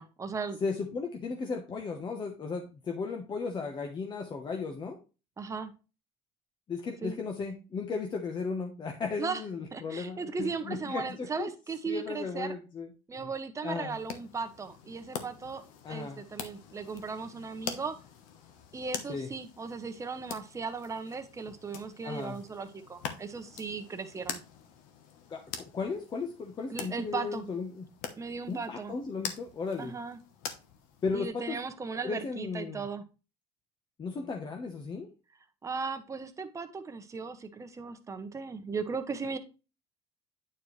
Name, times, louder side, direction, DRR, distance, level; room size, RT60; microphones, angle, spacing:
voice 1, 0.0-0.6 5.4-5.7 7.0-7.2 9.2-9.4 9.7-12.5 13.1-15.6 15.9-17.9 18.7-24.4 26.7-27.4 28.2-29.0 29.8-30.2 31.1-33.0 35.6-39.4, right 4 dB, 20° right, 8 dB, 1.0 m, -37 dB
voice 2, 0.6-5.0 6.7-11.5 11.9-12.9 13.6-14.0 15.8-16.2 19.1-19.3 22.0-22.4 25.3-27.8 28.5-30.0 31.0-31.6 32.0-32.9 34.0-35.1, left 4 dB, 30° left, 2 dB, 1.0 m, -35 dB
sound 1, 13.9-31.3, left 7 dB, 80° left, 1.1 m, -45 dB
9.2 x 4.5 x 3.2 m, 0.32 s
cardioid pair, 115°, 14 cm